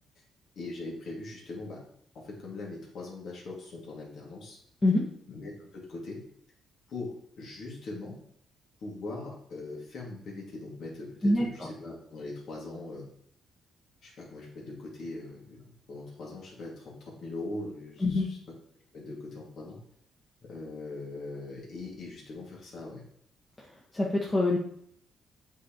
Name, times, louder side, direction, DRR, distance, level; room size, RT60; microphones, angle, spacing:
voice 1, 0.6-1.8 2.1-4.6 5.3-6.2 6.9-8.2 8.8-13.1 14.0-18.4 18.9-19.8 20.4-23.0, left 2 dB, 65° left, -3 dB, 2.3 m, -41 dB
voice 2, 11.2-11.7 18.0-18.3 23.6-23.7 23.9-24.6, left 2 dB, 25° left, -4 dB, 1.4 m, -25 dB
8.1 x 4.7 x 3.1 m, 0.67 s
cardioid pair, 90°, 0 cm